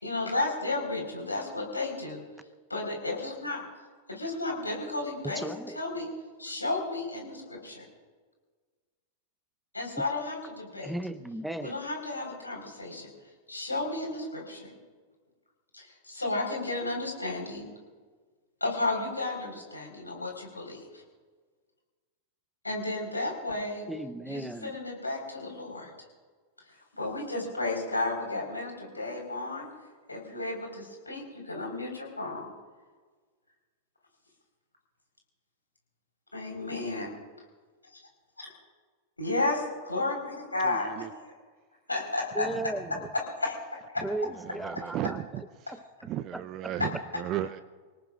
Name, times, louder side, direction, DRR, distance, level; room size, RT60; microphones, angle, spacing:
voice 1, 0.0-2.2 2.7-3.6 4.1-6.1 6.4-7.8 9.7-10.9 11.6-13.1 13.5-14.7 15.7-17.6 18.6-21.0 22.6-23.9 24.3-25.9 26.9-29.7 30.1-32.4 36.3-37.1 38.4-38.5 39.2-40.9 41.9-42.5 43.4-43.8 46.8-46.9, left 2 dB, 90° left, 1 dB, 4.4 m, -33 dB
voice 2, 5.3-5.8 10.8-11.8 23.9-24.8 42.3-43.1 44.0-45.2 45.7-46.7, right 2 dB, 5° right, 13 dB, 0.8 m, -36 dB
voice 3, 40.6-41.1 44.4-45.7 46.1-47.6, right 12 dB, 40° right, 11 dB, 0.6 m, -35 dB
27.5 x 18.5 x 2.5 m, 1.4 s
figure-of-eight pair, 95°, 0 cm